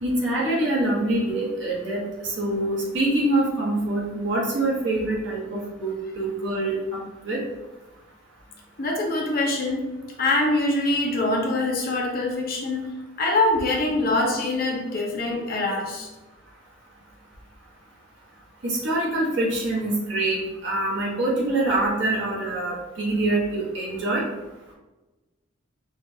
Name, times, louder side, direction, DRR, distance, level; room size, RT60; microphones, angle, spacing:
voice 1, 0.0-6.8 7.2-7.4 18.6-24.3, right 2 dB, 65° right, -4 dB, 1.2 m, -25 dB
voice 2, 8.8-9.8 10.2-12.8 13.2-16.1, left 2 dB, 45° left, -1 dB, 0.7 m, -24 dB
5.1 x 2.5 x 2.7 m, 1.1 s
head